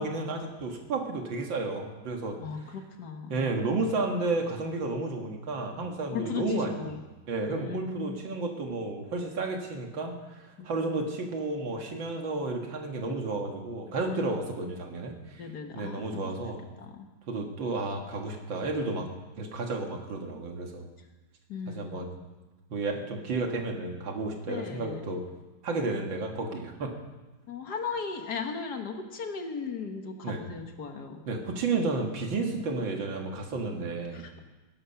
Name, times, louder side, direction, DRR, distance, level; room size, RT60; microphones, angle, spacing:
voice 1, 0.0-2.4 3.3-6.9 7.3-15.4 15.7-16.6 17.3-19.1 19.4-20.9 21.7-22.2 22.7-25.3 25.6-26.9 30.2-30.4 31.3-34.3, right 3 dB, 75° right, 3 dB, 2.4 m, -32 dB
voice 2, 2.4-3.5 5.8-7.0 7.5-8.2 10.6-11.1 14.1-14.4 15.4-16.5 16.8-17.1 21.5-22.0 24.5-25.0 27.5-31.2 34.1-34.4, left 5 dB, 55° left, 5 dB, 1.8 m, -37 dB
20.0 x 11.0 x 5.7 m, 1.2 s
omnidirectional pair, 2.1 m